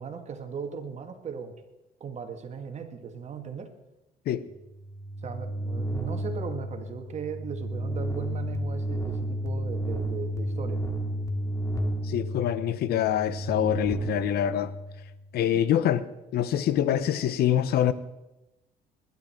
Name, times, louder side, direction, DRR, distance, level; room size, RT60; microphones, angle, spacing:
voice 1, 0.0-1.6 2.0-3.7 5.2-10.8 15.4-15.6, right 6 dB, 40° right, 1.9 m, -38 dB
sound 1, 4.6-15.3, right 1 dB, 20° left, 2.4 m, -32 dB
voice 2, 12.1-14.7 15.3-16.0 16.3-17.9, left 10 dB, 70° left, 1.0 m, -25 dB
20.0 x 11.5 x 4.5 m
cardioid pair, 110°, 17 cm